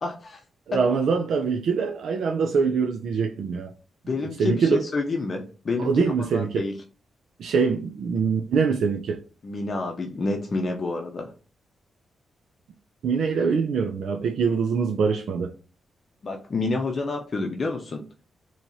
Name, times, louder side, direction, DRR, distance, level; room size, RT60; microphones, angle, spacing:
voice 1, 0.0-0.4 0.7-0.8 4.1-6.0 6.3-6.7 9.4-11.3 16.2-18.1, left 3 dB, 40° left, 0.6 m, -28 dB
voice 2, 0.7-3.7 4.4-4.8 5.8-6.6 7.4-9.2 13.0-15.5, right 5 dB, 80° right, 0.4 m, -24 dB
4.5 x 2.9 x 2.6 m
cardioid pair, 105°, 0 cm